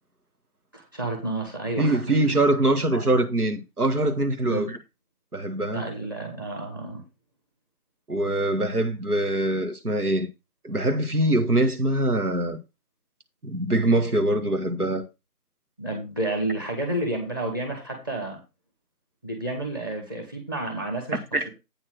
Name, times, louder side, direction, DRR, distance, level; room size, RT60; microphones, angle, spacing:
voice 1, 0.7-2.0 2.9-3.1 4.4-4.7 5.7-7.0 15.8-18.4 19.2-21.2, right 1 dB, 15° right, 1.5 m, -30 dB
voice 2, 1.8-4.8 5.3-5.8 8.1-10.3 10.6-12.6 13.4-15.1 21.3-21.5, right 1 dB, 75° right, 1.8 m, -23 dB
8.7 x 4.5 x 6.1 m
figure-of-eight pair, 160°, 45 cm